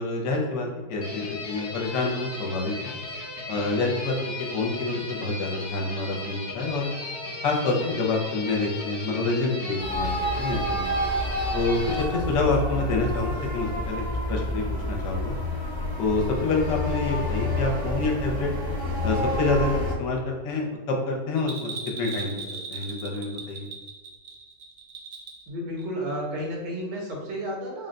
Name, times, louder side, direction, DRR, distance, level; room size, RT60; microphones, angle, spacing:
voice 1, 0.0-2.9 3.5-6.9 7.4-10.9 11.5-14.0 14.3-15.3 16.0-18.5 19.0-23.7, left 3 dB, 75° left, 0 dB, 1.3 m, -27 dB
sound 1, 1.0-12.0, left 2 dB, 50° left, 0.7 m, -36 dB
sound 2, 9.8-19.9, left 1 dB, 15° left, 0.8 m, -29 dB
Bell, 21.4-25.5 25.8-25.9, right 4 dB, 60° right, 0.8 m, -38 dB
voice 2, 25.5-27.9, equal, 80° right, -2 dB, 1.7 m, -32 dB
3.7 x 2.1 x 3.8 m, 1.3 s
omnidirectional pair, 1.9 m